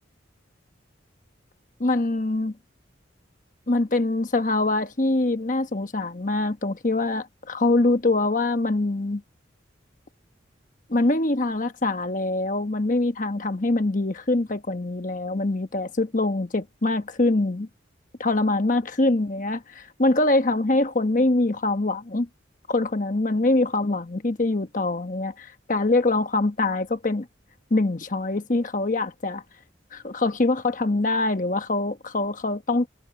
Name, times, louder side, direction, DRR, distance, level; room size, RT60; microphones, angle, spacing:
voice 1, 1.8-2.5 3.7-9.2 10.9-17.7 18.2-22.3 22.7-27.3 27.7-29.4 29.9-32.9, left 2 dB, 40° left, 1.1 m, -24 dB
head